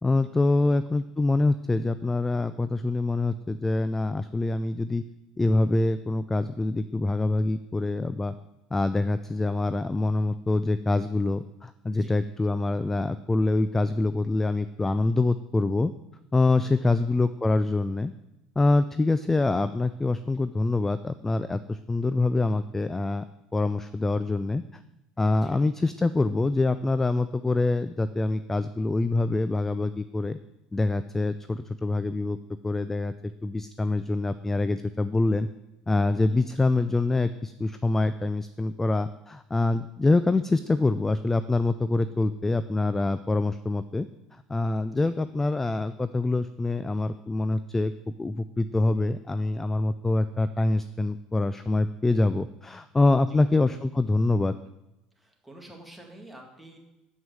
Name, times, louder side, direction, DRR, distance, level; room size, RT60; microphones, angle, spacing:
voice 1, 0.0-5.0 5.4-8.3 8.7-15.9 16.3-18.1 18.6-23.2 23.5-24.6 25.2-30.4 30.7-32.4 32.6-35.5 35.9-44.1 44.5-47.9 48.2-54.5, left 2 dB, 15° left, 13 dB, 0.3 m, -25 dB
voice 2, 16.6-17.0 25.4-25.6 36.1-36.5 44.9-45.1 53.2-53.4 55.2-56.8, right 1 dB, ahead, 0 dB, 2.0 m, -49 dB
7.3 x 6.1 x 6.3 m, 0.93 s
supercardioid pair, 90°, 2 cm